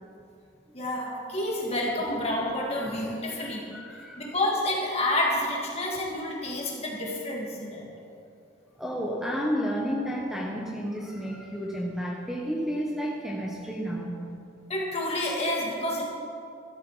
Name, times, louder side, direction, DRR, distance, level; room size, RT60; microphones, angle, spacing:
voice 1, 0.7-3.7 4.2-7.9 14.7-16.0, left 1 dB, 35° left, -2 dB, 2.4 m, -29 dB
voice 2, 3.3-4.3 8.8-14.3, equal, ahead, -3 dB, 1.2 m, -31 dB
13.5 x 12.0 x 5.0 m, 2.5 s
head